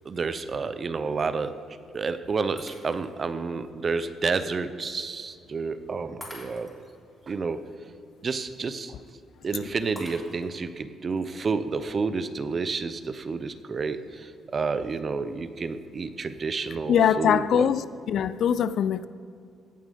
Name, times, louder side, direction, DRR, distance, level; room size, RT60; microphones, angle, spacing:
voice 1, 0.0-1.6 1.9-6.8 7.3-7.7 8.2-8.9 9.4-17.7, right 4 dB, 40° right, 0.6 m, -30 dB
Shatter, 2.6-3.3 3.8-3.9 6.2-6.9 10.0-10.7, left 1 dB, 5° left, 3.3 m, -45 dB
voice 2, 16.9-19.1, left 8 dB, 70° left, 0.4 m, -22 dB
16.5 x 7.2 x 5.3 m
cardioid pair, 90°, 0 cm